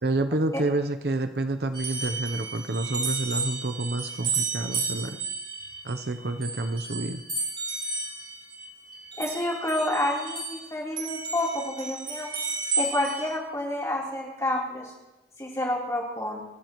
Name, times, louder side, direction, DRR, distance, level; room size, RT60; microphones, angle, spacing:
voice 1, 0.0-5.2 5.8-7.2, right 2 dB, 60° right, 9 dB, 0.7 m, -29 dB
sound 1, 1.7-10.7 11.0-13.3, right 4 dB, 25° right, 7.4 m, -32 dB
voice 2, 9.2-12.3 12.7-14.9 15.4-16.4, left 1 dB, 15° left, -4 dB, 3.6 m, -29 dB
27.5 x 13.5 x 3.1 m, 1.0 s
head